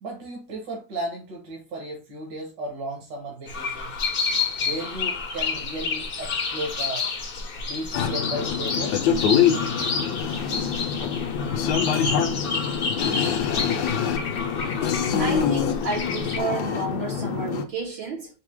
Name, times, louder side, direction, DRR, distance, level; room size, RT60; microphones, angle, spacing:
voice 1, 0.0-3.9 4.6-7.1 7.7-8.9, right 1 dB, 65° right, 1.9 m, -34 dB
sound 1, 3.5-16.4, left 4 dB, 50° left, 0.6 m, -30 dB
sound 2, 7.9-17.6, left 8 dB, 75° left, 1.1 m, -25 dB
voice 2, 15.2-18.3, right 4 dB, 85° right, 2.6 m, -31 dB
4.9 x 2.8 x 3.5 m
omnidirectional pair, 2.0 m